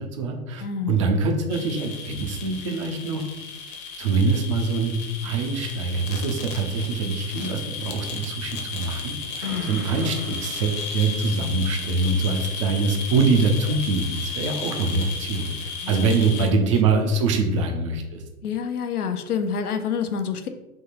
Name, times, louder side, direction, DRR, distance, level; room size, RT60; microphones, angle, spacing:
voice 1, 0.0-3.3 4.0-4.9 5.2-15.6 15.9-18.2, right 3 dB, 25° right, 3 dB, 0.3 m, -24 dB
voice 2, 0.6-1.2 9.4-9.8 15.8-16.2 16.5-16.6 17.3-17.4 18.4-20.5, left 6 dB, 80° left, 8 dB, 0.6 m, -28 dB
sound 1, 1.5-16.5, left 5 dB, 35° left, 0.8 m, -34 dB
Explosion, 9.4-11.6, right 2 dB, 75° right, 1.2 m, -40 dB
3.5 x 2.8 x 4.2 m, 1.0 s
figure-of-eight pair, 110°, 45 cm